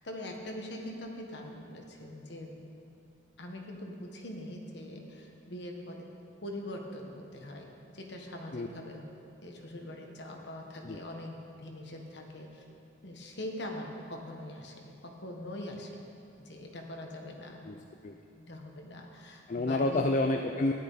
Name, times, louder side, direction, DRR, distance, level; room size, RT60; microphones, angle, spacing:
voice 1, 0.0-2.6 3.4-6.1 6.4-9.0 9.4-11.3 11.6-12.6 13.0-16.0 16.4-17.6 18.4-20.0, left 1 dB, 60° left, 1 dB, 1.4 m, -42 dB
voice 2, 17.7-18.1 19.5-20.7, left 2 dB, 40° left, 4 dB, 0.4 m, -29 dB
13.5 x 10.5 x 4.1 m, 2.7 s
head